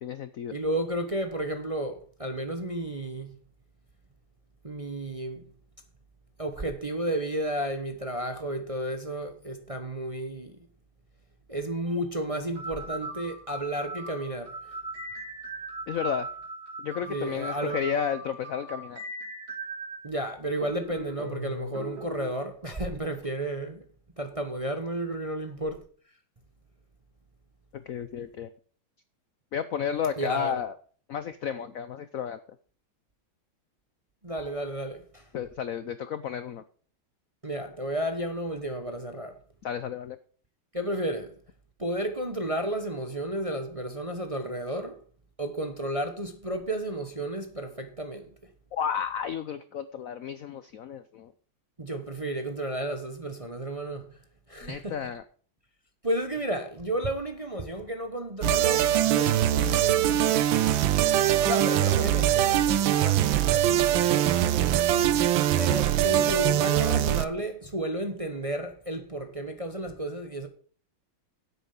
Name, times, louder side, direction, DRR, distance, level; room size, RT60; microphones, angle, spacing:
voice 1, 0.0-0.5 15.9-16.3 16.8-19.0 27.7-28.5 29.5-30.7 31.1-32.4 35.3-36.6 39.6-40.2 48.7-51.3 54.6-55.2, left 8 dB, 85° left, 0.7 m, -32 dB
voice 2, 0.5-3.4 4.6-5.5 6.4-10.6 11.5-14.8 17.1-17.8 20.0-23.9 24.2-25.9 30.2-30.5 34.2-35.3 37.4-39.4 40.7-41.3 41.8-45.0 45.4-48.3 51.8-54.2 54.5-55.0 56.0-60.9 61.4-65.1 65.6-70.5, right 1 dB, 25° right, 0.7 m, -32 dB
sound 1, 11.9-12.0 12.6-20.1 20.6-22.3, right 1 dB, 50° right, 2.4 m, -39 dB
sound 2, 58.4-67.3, right 11 dB, 75° right, 1.4 m, -22 dB
10.0 x 8.4 x 5.6 m
omnidirectional pair, 2.3 m